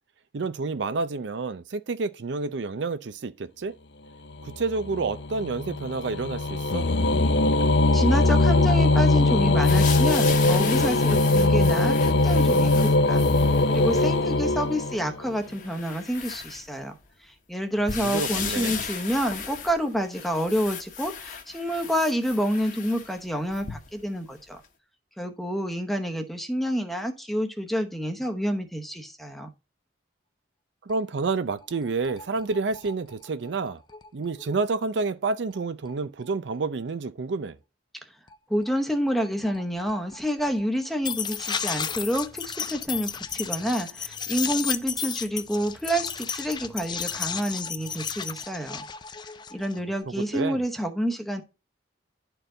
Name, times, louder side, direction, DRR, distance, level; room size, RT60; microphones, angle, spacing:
voice 1, 0.3-3.7 4.4-6.9 18.0-18.7 30.9-33.8 34.1-37.6 50.1-50.6, right 4 dB, 70° right, 0.5 m, -29 dB
sound 1, 4.4-15.3, left 2 dB, 65° left, 0.6 m, -21 dB
voice 2, 7.9-16.9 17.2-24.6 25.2-29.5 38.5-48.8 49.5-51.4, equal, ahead, 0.9 m, -28 dB
sound 2, 9.6-14.2 14.8-14.9 15.4-17.0 17.9-24.1 24.6-24.7, left 7 dB, 45° left, 1.1 m, -36 dB
sound 3, 30.9-31.0 31.3-31.4 31.6-34.8 35.5-35.6 35.9-36.0 36.2-36.3 38.3-38.4 38.6-38.7 39.0-50.0, left 7 dB, 25° left, 0.4 m, -34 dB
10.5 x 4.6 x 3.8 m
head